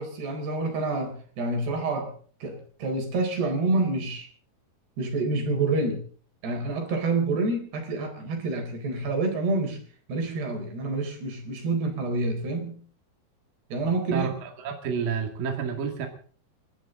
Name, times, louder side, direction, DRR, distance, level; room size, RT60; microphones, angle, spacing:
voice 1, 0.0-2.2 2.4-4.3 5.0-6.0 6.4-9.8 10.1-12.8 13.7-14.3, right 3 dB, 90° right, 4 dB, 6.1 m, -28 dB
voice 2, 14.1-16.1, right 6 dB, 65° right, 3 dB, 3.8 m, -30 dB
29.5 x 13.0 x 3.8 m, 0.43 s
omnidirectional pair, 4.5 m